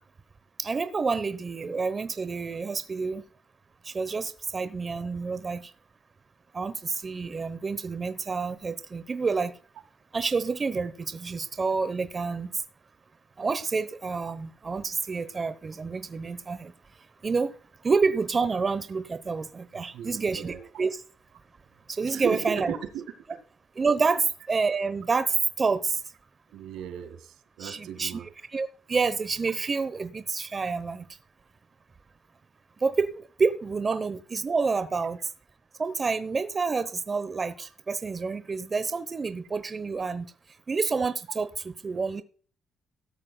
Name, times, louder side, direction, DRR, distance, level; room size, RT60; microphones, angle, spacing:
voice 1, 0.6-3.2 3.8-5.7 6.5-9.5 10.1-12.5 13.4-16.7 17.2-17.5 17.8-21.0 21.9-22.7 23.8-26.0 27.6-28.1 28.5-31.1 32.8-35.2 35.8-40.3 40.7-42.2, right 4 dB, 35° right, 0.9 m, -28 dB
voice 2, 19.9-20.7 22.0-23.0 23.3-23.4 26.5-28.3, right 8 dB, 85° right, 2.0 m, -36 dB
16.5 x 13.0 x 2.3 m
cardioid pair, 90°, 0 cm